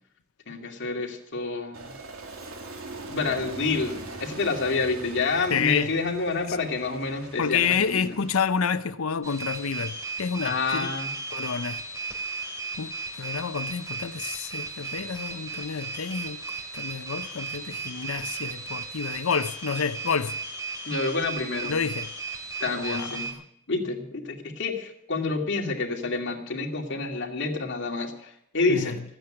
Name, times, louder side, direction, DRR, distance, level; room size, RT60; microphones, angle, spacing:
voice 1, 0.5-1.9 3.1-8.2 10.4-11.1 20.8-21.7 22.6-23.3 23.7-29.0, left 3 dB, 60° left, 2.5 m, -28 dB
Aircraft, 1.7-8.4, right 2 dB, 80° right, 2.4 m, -41 dB
voice 2, 5.5-5.9 6.5-6.6 7.4-10.9 11.3-11.8 12.8-12.9 13.2-16.4 16.7-20.3 21.6-22.1 22.8-23.1 28.7-29.0, left 6 dB, 90° left, 0.7 m, -29 dB
sound 1, 9.2-23.3, right 4 dB, 15° right, 2.7 m, -35 dB
14.0 x 9.1 x 9.0 m
head